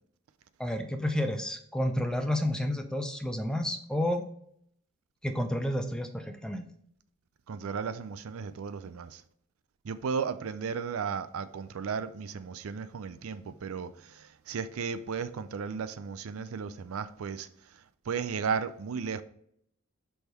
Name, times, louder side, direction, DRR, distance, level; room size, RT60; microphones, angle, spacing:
voice 1, 0.6-4.3 5.2-6.7, left 1 dB, 5° left, 0.5 m, -30 dB
voice 2, 7.5-9.2 9.8-17.5 18.1-19.2, right 6 dB, 75° right, 0.4 m, -35 dB
6.3 x 3.5 x 4.4 m
head